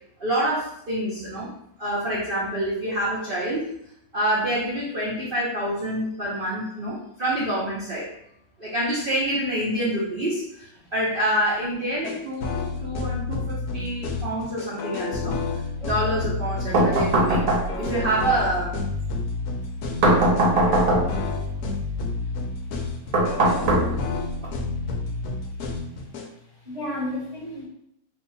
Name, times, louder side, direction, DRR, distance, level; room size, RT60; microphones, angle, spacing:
voice 1, 0.2-1.5 1.8-3.7 4.1-8.1 8.6-12.5 12.8-17.4 17.8-18.8, right 1 dB, 75° right, -7 dB, 0.5 m, -27 dB
sound 1, 12.0-26.3, left 3 dB, 70° left, 0.9 m, -29 dB
voice 2, 15.8-16.2 20.7-21.3 26.6-27.6, left 1 dB, 25° right, -7 dB, 0.8 m, -34 dB
sound 2, 16.7-18.0 20.0-21.3 23.1-24.3, right 1 dB, 55° right, 0.9 m, -20 dB
2.9 x 2.7 x 3.9 m, 0.73 s
omnidirectional pair, 2.2 m